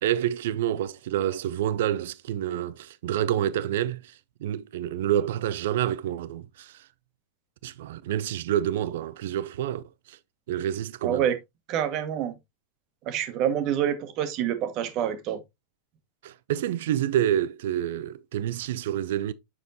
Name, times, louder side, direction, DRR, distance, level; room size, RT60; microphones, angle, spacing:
voice 1, 0.0-6.8 7.6-10.2 10.5-11.3 16.2-19.3, right 11 dB, 55° right, 0.4 m, -28 dB
voice 2, 11.0-11.3 11.7-12.3 13.1-15.4, right 10 dB, 40° right, 1.1 m, -27 dB
7.1 x 6.4 x 2.7 m
figure-of-eight pair, 90°, 0 cm